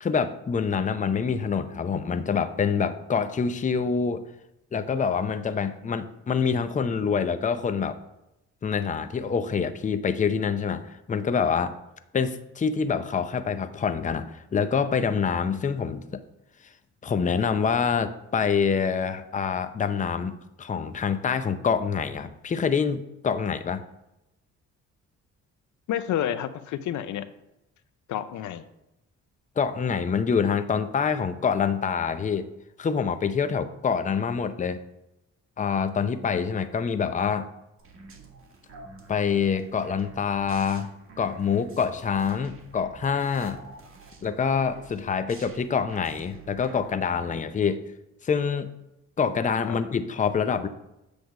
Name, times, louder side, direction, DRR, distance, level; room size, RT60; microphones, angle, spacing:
voice 1, 0.0-4.2 4.7-8.0 8.6-11.7 12.1-16.2 17.0-23.8 29.6-32.5 32.8-34.8 35.6-37.5 39.1-40.9 41.2-43.6 44.2-47.8 48.2-48.7 49.2-50.7, left 6 dB, 25° left, 10 dB, 0.6 m, -26 dB
voice 2, 25.9-27.3 28.1-28.7 49.7-49.8, left 10 dB, 75° left, 12 dB, 0.6 m, -29 dB
sound 1, 37.8-47.4, right 4 dB, 45° right, 1.7 m, -48 dB
7.9 x 3.4 x 6.3 m, 0.89 s
cardioid pair, 90°, 30 cm